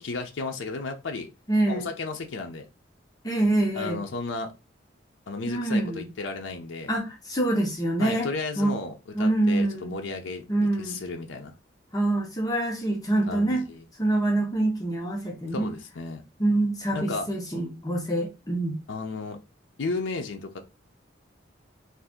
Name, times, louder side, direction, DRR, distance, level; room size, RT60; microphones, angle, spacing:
voice 1, 0.0-1.3 1.7-2.7 3.7-4.5 5.3-6.9 8.0-11.5 13.3-13.8 15.5-16.2 16.9-17.3 18.9-19.4 19.8-20.6, left 3 dB, 85° left, 0.5 m, -33 dB
voice 2, 1.5-1.9 3.2-4.0 5.5-6.1 6.9-8.3 8.6-8.8 9.1-10.0 10.5-11.0 11.9-13.6 14.0-15.7 16.4-18.8, right 1 dB, 20° left, 0.7 m, -25 dB
2.7 x 2.4 x 3.5 m
head